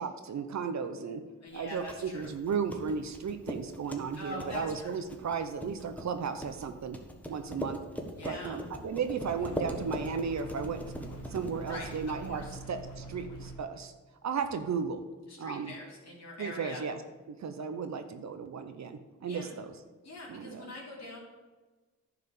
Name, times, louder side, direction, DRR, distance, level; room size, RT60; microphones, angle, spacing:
voice 1, 0.0-1.2 1.5-7.0 7.3-7.8 8.2-10.8 11.3-13.9 14.2-15.0 15.4-15.7 16.4-17.0 17.3-19.7 20.3-20.7, right 6 dB, 60° right, 8 dB, 0.8 m, -35 dB
voice 2, 1.4-2.3 4.2-5.0 8.2-8.6 11.7-12.5 15.3-16.8 19.3-19.6 20.0-21.2, left 2 dB, 55° left, -5 dB, 3.0 m, -43 dB
sound 1, 1.6-12.6, equal, 5° left, 1.3 m, -42 dB
sound 2, 9.2-13.5, right 2 dB, 80° left, 2.7 m, -44 dB
11.0 x 4.9 x 6.7 m, 1.3 s
cardioid pair, 85°, 31 cm